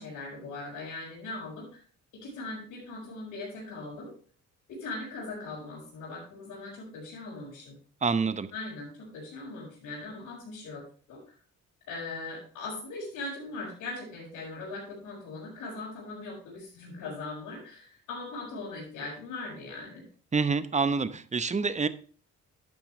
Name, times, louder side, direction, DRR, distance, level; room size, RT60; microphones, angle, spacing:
voice 1, 0.0-1.8 2.1-4.1 4.7-7.7 8.5-10.8 11.1-11.3 11.9-20.1, left 3 dB, 85° left, 5.5 m, -40 dB
voice 2, 8.0-8.5 20.3-21.9, right 4 dB, 25° right, 0.8 m, -27 dB
12.0 x 8.4 x 3.2 m
cardioid pair, 90°, 30 cm